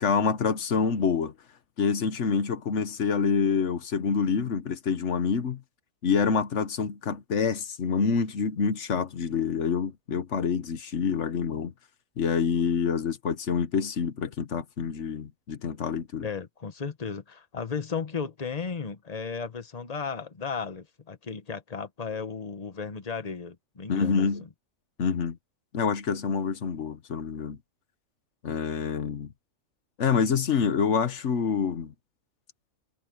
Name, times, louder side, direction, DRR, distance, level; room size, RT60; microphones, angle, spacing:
voice 1, 0.0-1.3 1.8-5.6 6.0-11.7 12.2-16.2 23.9-24.4 25.0-25.4 25.7-27.6 28.4-29.3 30.0-31.9, left 6 dB, 60° left, 1.4 m, -27 dB
voice 2, 16.2-24.3, left 5 dB, 30° left, 1.2 m, -35 dB
omnidirectional pair, 1.4 m